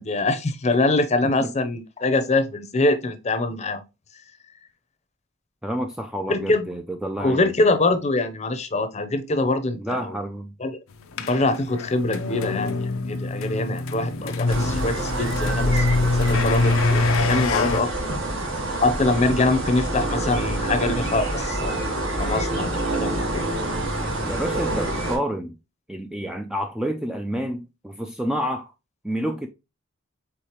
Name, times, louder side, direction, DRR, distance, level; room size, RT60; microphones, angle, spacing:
voice 1, 0.0-3.8 6.3-6.7 7.2-10.2 10.6-10.8 11.2-18.1 18.8-21.8 22.2-23.5, left 2 dB, 35° left, 0.7 m, -24 dB
voice 2, 5.6-7.5 9.8-10.5 24.2-25.5 25.9-28.7 29.0-29.5, equal, 5° right, 0.4 m, -29 dB
sound 1, 11.1-17.8, left 3 dB, 85° left, 0.5 m, -24 dB
sound 2, 14.5-25.2, right 1 dB, 65° right, 1.9 m, -27 dB
4.9 x 3.7 x 2.9 m
head